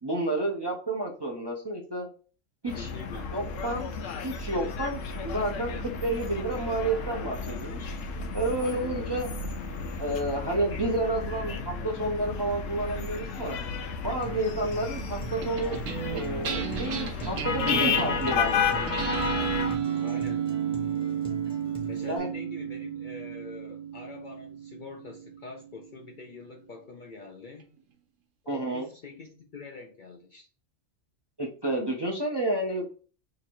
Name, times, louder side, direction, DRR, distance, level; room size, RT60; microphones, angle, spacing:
voice 1, 0.0-2.1 2.6-2.9 3.3-3.9 4.2-7.9 8.3-9.3 10.0-13.6 14.0-15.8 16.1-19.0 22.1-22.3 28.5-28.9 31.4-32.8, right 1 dB, 30° right, 0.5 m, -30 dB
sound 1, 2.7-19.8, left 5 dB, 85° left, 1.0 m, -32 dB
voice 2, 2.7-3.3 8.6-9.3 20.0-20.5 21.9-27.7 28.4-30.5, left 4 dB, 55° left, 0.6 m, -45 dB
Acoustic guitar, 14.2-22.2, right 1 dB, 5° left, 0.8 m, -43 dB
sound 2, 15.4-26.0, right 8 dB, 80° right, 1.1 m, -33 dB
2.9 x 2.5 x 4.4 m
omnidirectional pair, 1.3 m